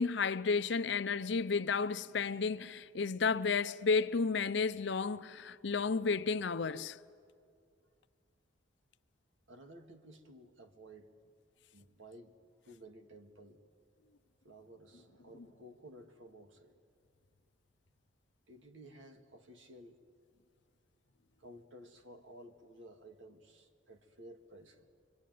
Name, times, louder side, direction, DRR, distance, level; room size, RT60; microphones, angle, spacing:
voice 1, 0.0-7.0, left 4 dB, 65° left, 0.6 m, -32 dB
voice 2, 9.5-11.1 11.7-12.3 12.6-13.6 14.4-16.8 18.5-20.0 21.4-24.8, right 1 dB, 85° right, 2.0 m, -55 dB
25.0 x 24.5 x 9.3 m
head